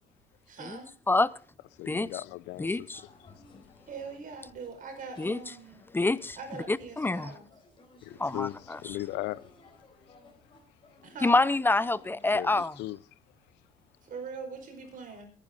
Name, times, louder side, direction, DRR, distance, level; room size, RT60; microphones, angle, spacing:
voice 1, 0.5-0.9 3.9-5.8 6.4-7.5 11.0-11.4 14.1-15.3, right 5 dB, 50° right, 5.6 m, -42 dB
voice 2, 1.8-3.8 8.0-9.5 10.1-10.2 12.3-13.2, left 17 dB, 85° left, 0.6 m, -39 dB
voice 3, 2.6-3.0 5.2-5.4 5.9-6.4 6.7-7.3 8.2-8.5 11.2-12.7, left 2 dB, 10° left, 0.6 m, -26 dB
sound 1, 2.9-12.4, left 3 dB, 30° left, 4.3 m, -57 dB
21.5 x 10.0 x 4.0 m
cardioid pair, 110°, 17 cm